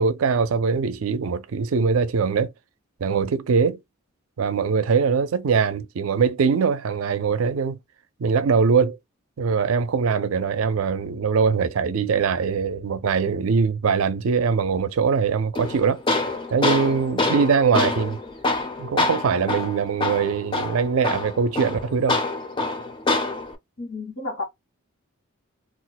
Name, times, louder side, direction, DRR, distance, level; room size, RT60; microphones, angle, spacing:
voice 1, 0.0-2.5 3.0-3.8 4.4-7.8 8.2-9.0 9.4-16.0 16.5-18.2 18.8-22.2, right 5 dB, 75° right, 0.4 m, -22 dB
Tools, 15.5-23.5, left 2 dB, 20° left, 0.4 m, -26 dB
voice 2, 23.8-24.4, left 3 dB, 75° left, 1.1 m, -31 dB
2.4 x 2.1 x 3.9 m
head